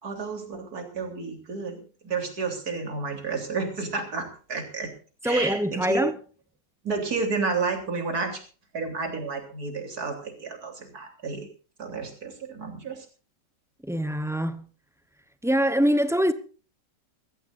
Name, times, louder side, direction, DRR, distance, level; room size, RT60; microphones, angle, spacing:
voice 1, 0.0-4.9 5.2-6.0 6.8-8.4 8.7-11.5 11.8-13.1, right 4 dB, 55° right, 4.0 m, -31 dB
voice 2, 5.2-6.1 13.8-14.6 15.4-16.3, equal, 5° right, 0.4 m, -24 dB
22.5 x 15.0 x 2.6 m
omnidirectional pair, 1.9 m